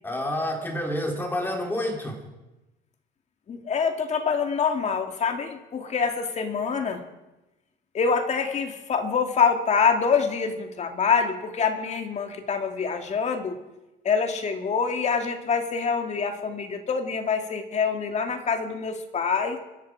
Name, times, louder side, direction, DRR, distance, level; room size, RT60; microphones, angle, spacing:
voice 1, 0.0-2.2, left 1 dB, 10° left, 1 dB, 3.6 m, -28 dB
voice 2, 3.5-7.0 7.9-13.6 14.0-19.6, left 5 dB, 40° left, 5 dB, 2.2 m, -25 dB
24.5 x 11.0 x 4.8 m, 1.0 s
cardioid pair, 110°, 17 cm